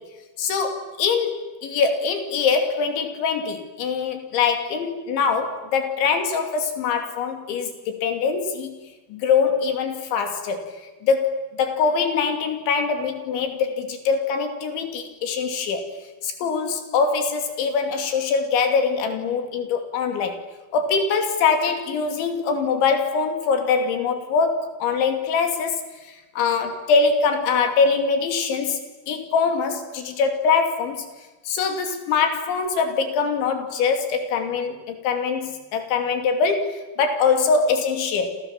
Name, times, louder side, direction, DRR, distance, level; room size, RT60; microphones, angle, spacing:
voice 1, 0.4-8.7 9.1-15.9 16.2-20.4 20.7-28.8 29.1-31.1 31.5-38.4, left 5 dB, 80° left, 6 dB, 5.2 m, -23 dB
28.5 x 28.0 x 7.3 m, 1.2 s
omnidirectional pair, 5.3 m